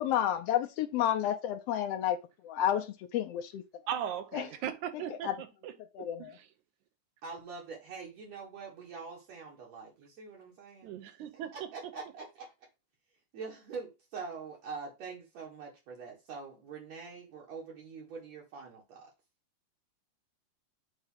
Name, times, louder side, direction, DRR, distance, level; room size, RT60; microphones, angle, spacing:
voice 1, 0.0-2.2 2.4-3.6 4.3-4.4 5.2-5.3 5.9-6.3, left 11 dB, 75° left, 1.5 m, -30 dB
voice 2, 3.9-6.5 10.8-11.9, right 9 dB, 85° right, 2.3 m, -39 dB
voice 3, 7.2-11.0 11.5-12.5 13.3-19.1, right 5 dB, 65° right, 2.7 m, -44 dB
8.0 x 2.8 x 5.6 m
omnidirectional pair, 3.3 m